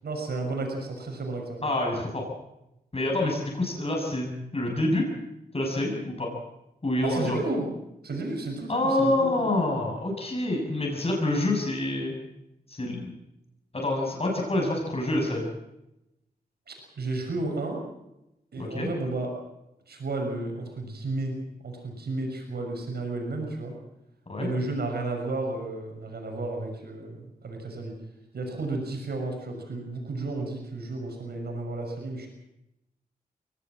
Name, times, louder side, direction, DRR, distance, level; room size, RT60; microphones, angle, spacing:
voice 1, 0.0-1.7 7.0-7.7 8.0-9.5 16.7-17.8 18.5-19.3 19.9-23.7 24.4-27.9 28.3-32.3, right 2 dB, 90° right, 2 dB, 6.1 m, -32 dB
voice 2, 1.6-2.2 2.9-5.1 5.5-6.3 6.8-7.4 8.7-12.1 12.7-13.1 13.7-15.4 18.6-18.9 24.3-24.5, left 1 dB, 40° left, 0 dB, 6.6 m, -27 dB
23.0 x 18.0 x 7.5 m, 0.89 s
wide cardioid pair, 70°, 16 cm